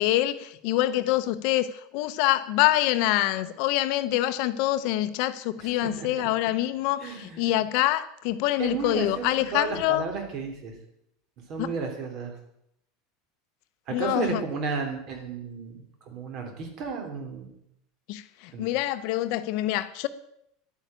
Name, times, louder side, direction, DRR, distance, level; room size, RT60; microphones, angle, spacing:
voice 1, 0.0-10.0 11.6-11.7 13.9-14.4 18.1-20.1, left 15 dB, 50° left, 0.8 m, -25 dB
voice 2, 5.6-6.3 7.0-7.5 8.6-10.7 11.5-12.3 13.9-17.5 18.5-18.7, right 5 dB, 40° right, 3.4 m, -33 dB
11.0 x 9.6 x 8.9 m
supercardioid pair, 170°, 0 cm